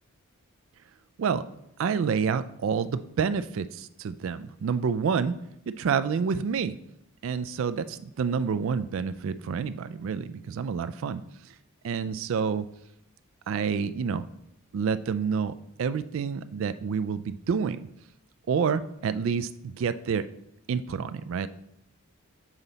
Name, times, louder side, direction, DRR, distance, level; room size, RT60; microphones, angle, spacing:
voice 1, 1.8-5.4 5.8-6.8 7.2-11.2 11.8-12.7 13.5-14.2 14.7-15.5 15.8-17.8 18.5-20.3 20.7-21.5, right 6 dB, 65° right, 13 dB, 0.3 m, -28 dB
7.3 x 3.9 x 4.0 m, 0.77 s
head